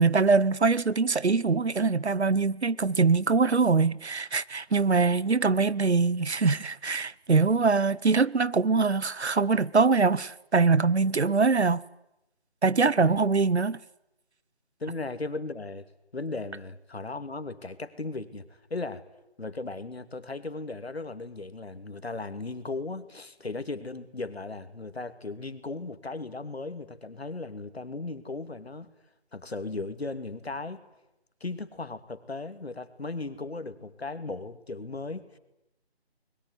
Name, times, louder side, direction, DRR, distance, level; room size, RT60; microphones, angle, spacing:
voice 1, 0.0-11.8 12.6-13.8, right 4 dB, 80° right, 1.1 m, -23 dB
voice 2, 14.8-15.8 16.1-19.0 19.4-28.9 29.3-30.8 31.4-35.4, left 3 dB, 70° left, 2.7 m, -37 dB
23.5 x 21.5 x 9.8 m
figure-of-eight pair, 170°, 33 cm